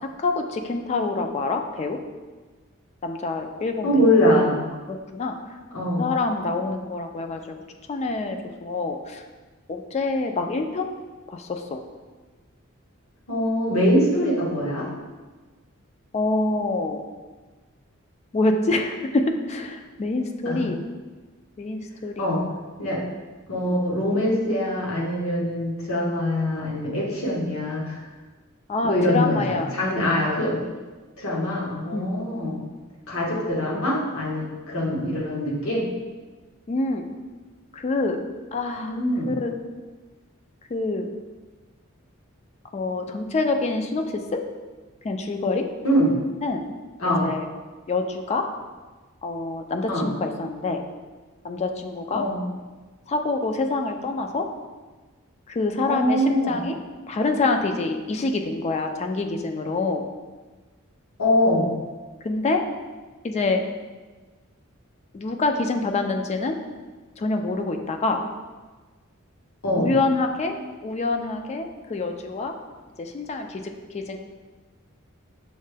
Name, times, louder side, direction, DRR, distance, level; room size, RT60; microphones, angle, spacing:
voice 1, 0.2-2.0 3.0-4.1 4.9-5.3 6.0-7.6 7.9-9.2 9.7-10.9 11.3-11.8 16.1-17.0 18.3-20.8 21.6-22.4 23.6-23.8 28.7-29.7 30.0-30.2 31.9-32.4 36.7-37.0 37.7-38.2 38.5-38.9 39.3-39.5 40.7-41.1 42.7-44.4 45.0-45.7 46.4-46.6 47.2-47.5 47.9-48.4 49.2-50.8 51.4-52.2 53.1-54.5 55.5-56.8 57.1-60.1 62.2-62.6 63.2-63.6 65.1-66.6 67.2-68.2 69.8-70.5 70.8-72.5 73.0-73.6 73.9-74.2, left 3 dB, 30° left, 5 dB, 0.3 m, -26 dB
voice 2, 3.8-4.6 5.7-6.1 13.3-14.9 20.4-20.7 22.2-22.4 22.8-23.0 23.5-28.0 28.8-30.6 31.2-32.6 33.1-35.9 38.8-39.3 45.8-46.2 47.0-47.3 49.9-50.1 52.1-52.4 55.8-56.6 61.2-61.8 69.6-69.9, left 1 dB, 75° left, -4 dB, 1.2 m, -23 dB
6.3 x 2.2 x 3.3 m, 1.3 s
head